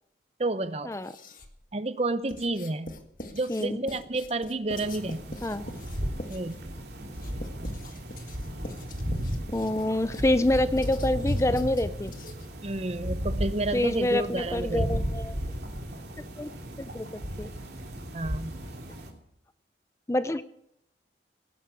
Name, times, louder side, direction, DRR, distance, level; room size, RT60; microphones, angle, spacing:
voice 1, 0.4-0.9 1.7-2.9 3.3-5.4 6.3-6.6 12.6-15.0 18.1-18.5, right 2 dB, 35° right, 12 dB, 0.8 m, -30 dB
Writing, 0.9-1.6 2.3-12.6, left 2 dB, 50° left, 1.7 m, -44 dB
sound 1, 4.7-19.1, equal, 65° right, 3.0 m, -34 dB
voice 2, 9.5-12.1 13.7-15.4 16.4-16.5 16.9-17.5 20.1-20.4, left 1 dB, 15° left, 12 dB, 0.5 m, -26 dB
18.0 x 11.0 x 6.8 m, 0.77 s
head